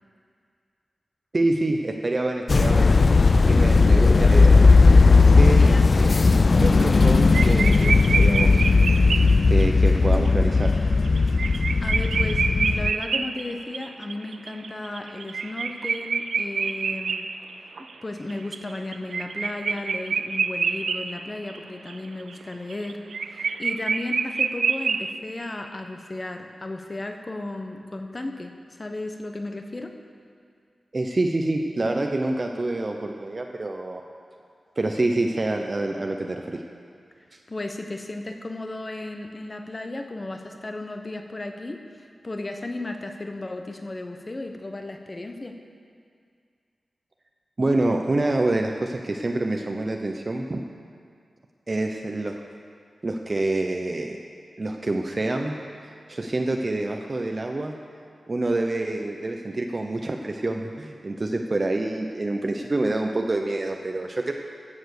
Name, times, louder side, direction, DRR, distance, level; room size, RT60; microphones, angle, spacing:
voice 1, 1.3-2.9 3.4-4.6 5.3-5.7 6.0-6.1 6.6-8.6 9.5-10.7 30.9-34.0 34.8-36.6 47.6-50.6 51.7-52.4 53.0-54.2 54.6-57.7 58.3-64.3, right 2 dB, 40° right, 3 dB, 0.7 m, -26 dB
sound 1, 2.5-12.9, left 3 dB, 50° left, 0.3 m, -17 dB
sound 2, 6.6-7.1 7.3-9.6 10.3-10.4 10.6-10.7 11.1-17.9 18.3-21.2 21.5-21.6 21.9-25.1, right 5 dB, 90° right, 0.4 m, -27 dB
voice 2, 11.8-17.3 18.0-29.9 37.5-45.5, left 2 dB, 35° left, 5 dB, 1.0 m, -34 dB
14.5 x 7.2 x 6.6 m, 2.2 s
wide cardioid pair, 80°, 0 cm